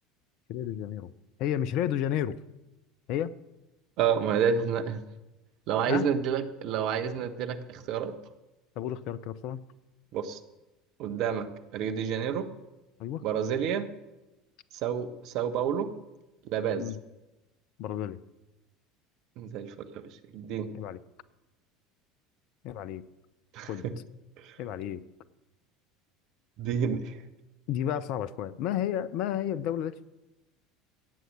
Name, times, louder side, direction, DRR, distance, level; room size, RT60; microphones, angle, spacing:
voice 1, 0.5-1.1 1.4-2.4 3.1-3.3 5.9-6.1 8.8-9.6 13.0-13.2 16.8-17.0 17.8-18.2 20.7-21.0 22.6-23.0 23.7-23.8 24.6-25.0 27.7-30.0, left 10 dB, 55° left, 17 dB, 0.6 m, -31 dB
voice 2, 4.0-5.0 5.7-8.2 10.1-10.4 11.0-12.5 13.2-13.9 14.8-15.9 16.4-16.8 19.4-20.0 20.3-20.7 23.5-23.9 24.4-24.6 26.6-27.2, right 7 dB, 55° right, 9 dB, 1.1 m, -29 dB
16.5 x 7.9 x 6.4 m, 1.0 s
figure-of-eight pair, 70°, 0 cm